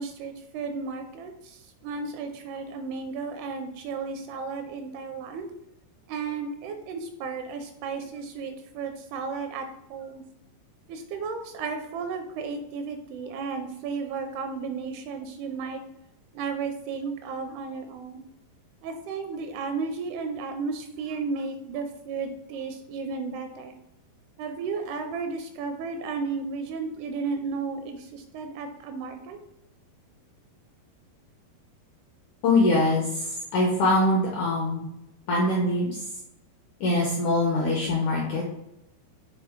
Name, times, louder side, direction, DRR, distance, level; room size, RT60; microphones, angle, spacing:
voice 1, 0.0-5.5 6.1-10.2 10.9-15.8 16.3-18.2 18.8-23.7 24.4-29.4, right 4 dB, 80° right, 6 dB, 2.4 m, -34 dB
voice 2, 32.4-34.9 35.3-36.1 36.8-38.5, left 2 dB, 80° left, -3 dB, 1.7 m, -23 dB
6.7 x 3.8 x 3.6 m, 0.84 s
omnidirectional pair, 4.9 m